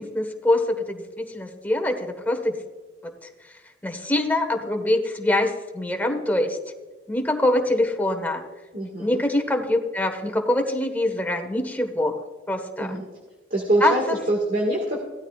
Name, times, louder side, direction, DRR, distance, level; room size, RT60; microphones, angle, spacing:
voice 1, 0.0-2.5 3.0-3.1 3.8-6.6 7.1-8.4 9.0-12.2 12.5-13.0 13.8-14.2, left 1 dB, 10° left, 3 dB, 1.4 m, -24 dB
voice 2, 8.7-9.2 12.8-13.1 13.5-15.0, right 1 dB, 50° right, 0 dB, 1.8 m, -24 dB
16.5 x 13.0 x 2.4 m, 1.4 s
head